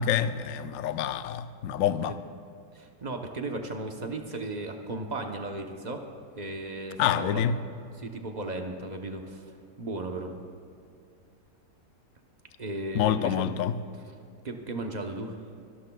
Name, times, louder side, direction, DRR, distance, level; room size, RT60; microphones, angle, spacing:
voice 1, 0.0-2.2 7.0-7.6 12.9-13.8, left 9 dB, 75° left, 0.8 m, -27 dB
voice 2, 2.7-6.0 6.4-7.4 8.0-9.4 9.8-10.3 12.6-13.4 14.4-15.4, right 2 dB, 40° right, 0.6 m, -35 dB
25.0 x 13.0 x 2.3 m
omnidirectional pair, 1.9 m